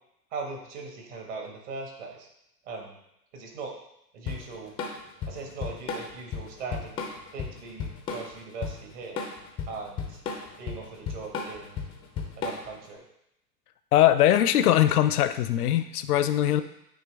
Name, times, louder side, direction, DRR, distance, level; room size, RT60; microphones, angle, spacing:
voice 1, 0.3-2.3 2.6-3.0 3.3-3.7 4.1-4.7 5.3-6.9 7.3-9.3 9.7-10.2 10.6-11.8 12.4-13.0, right 4 dB, 45° right, 1 dB, 1.6 m, -39 dB
Drum kit / Drum, 4.3-12.9, left 5 dB, 10° left, 0.4 m, -34 dB
voice 2, 13.9-16.6, left 12 dB, 65° left, 11 dB, 0.6 m, -21 dB
8.7 x 3.2 x 3.4 m, 0.80 s
figure-of-eight pair, 100°, 49 cm